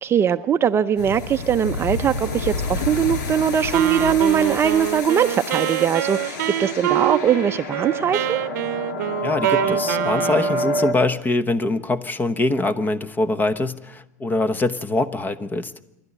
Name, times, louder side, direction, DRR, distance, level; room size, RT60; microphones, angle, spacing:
voice 1, 0.0-8.4, right 8 dB, 25° right, 10 dB, 0.7 m, -21 dB
sound 1, 1.0-10.9, left 2 dB, 75° left, 2.4 m, -29 dB
Wind instrument woodwind instrument, 3.7-10.9, right 14 dB, 75° right, 0.8 m, -26 dB
voice 2, 9.2-15.7, left 2 dB, 20° left, 13 dB, 1.0 m, -23 dB
27.5 x 12.0 x 9.9 m, 0.97 s
hypercardioid pair, 115°, 10 cm